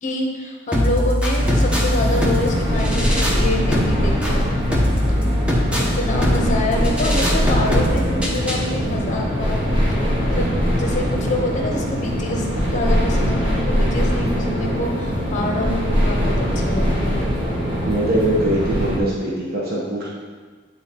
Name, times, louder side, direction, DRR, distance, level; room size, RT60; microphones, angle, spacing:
voice 1, 0.0-4.8 5.1-5.2 5.8-9.6 9.9-10.0 10.3-17.2, left 1 dB, 40° left, 1 dB, 0.9 m, -26 dB
sound 1, 0.7-8.7, left 1 dB, 5° right, 0.9 m, -22 dB
sound 2, 1.3-19.0, equal, 25° right, 1.3 m, -22 dB
voice 2, 17.8-20.1, right 1 dB, 50° right, -5 dB, 1.0 m, -22 dB
9.2 x 3.9 x 2.9 m, 1.5 s
head